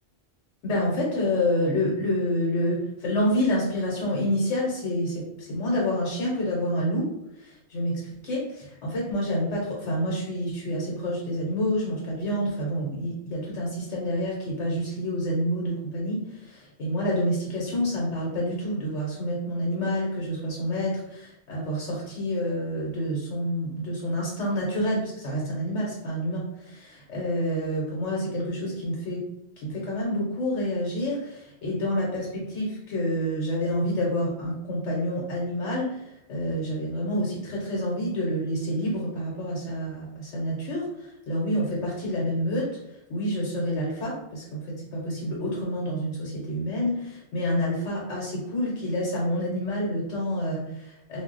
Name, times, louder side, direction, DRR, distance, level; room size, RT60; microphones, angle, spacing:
voice 1, 0.6-7.1 7.4-29.2 29.6-51.2, equal, 85° left, -5 dB, 1.1 m, -28 dB
2.4 x 2.0 x 3.7 m, 0.84 s
omnidirectional pair, 1.2 m